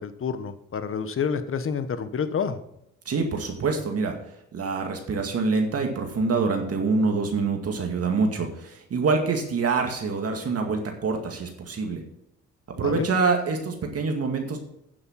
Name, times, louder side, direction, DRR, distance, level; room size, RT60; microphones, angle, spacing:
voice 1, 0.0-2.6 12.8-13.1, left 6 dB, 45° left, 11 dB, 1.2 m, -28 dB
voice 2, 3.1-4.2 4.5-12.0 12.7-14.6, right 4 dB, 50° right, 3 dB, 2.1 m, -25 dB
9.5 x 7.3 x 5.8 m, 0.78 s
cardioid pair, 90°, 30 cm